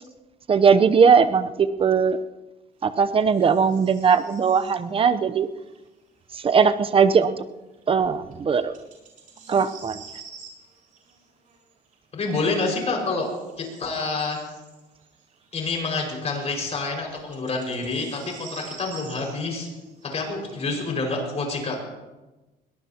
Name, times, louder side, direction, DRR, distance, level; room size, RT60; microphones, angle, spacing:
voice 1, 0.5-2.2 2.8-5.5 6.3-7.4 7.9-8.7 9.5-10.0, right 6 dB, 35° right, 11 dB, 0.8 m, -19 dB
sound 1, 2.8-5.2 5.6-6.7 7.7-7.8 8.3-12.0 12.5-20.5, right 5 dB, 50° right, 5.7 m, -48 dB
voice 2, 12.1-13.3 13.6-14.4 15.5-19.7 20.1-21.8, left 3 dB, 40° left, 0 dB, 5.6 m, -27 dB
21.5 x 18.0 x 2.9 m, 1.1 s
cardioid pair, 110°, 17 cm